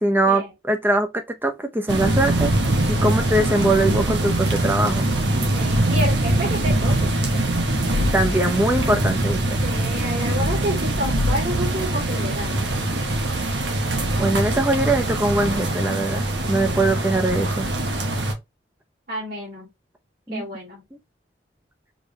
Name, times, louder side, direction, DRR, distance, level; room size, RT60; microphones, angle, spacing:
voice 1, 0.0-2.5 2.9-5.1 8.1-9.6 14.2-17.7 20.3-20.5, right 1 dB, 10° right, 0.7 m, -22 dB
sound 1, 1.9-18.3, right 1 dB, 80° right, 1.2 m, -23 dB
voice 2, 5.5-7.5 9.6-12.6 19.1-19.7 20.3-20.8, equal, 55° right, 2.3 m, -30 dB
sound 2, 7.9-8.4 10.2-11.4 11.7-11.9, left 3 dB, 50° left, 0.6 m, -27 dB
4.8 x 3.4 x 3.2 m
head